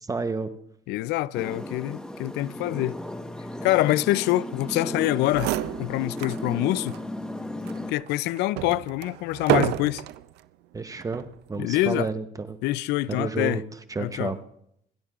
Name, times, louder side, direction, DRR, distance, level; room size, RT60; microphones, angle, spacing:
voice 1, 0.1-0.5 10.7-12.6 13.1-13.6 13.9-14.4, right 4 dB, 20° right, 0.8 m, -30 dB
voice 2, 0.9-3.0 3.6-5.5 5.8-7.0 7.9-10.0 11.6-12.1 12.6-13.6 14.0-14.3, left 17 dB, 85° left, 0.4 m, -25 dB
sound 1, 1.3-7.9, left 1 dB, 5° left, 1.1 m, -35 dB
sound 2, 5.0-5.1 5.3-6.4 6.9-7.0 7.6-10.2 11.0-11.4, right 14 dB, 85° right, 0.5 m, -29 dB
27.5 x 11.5 x 2.4 m
cardioid pair, 110°, 17 cm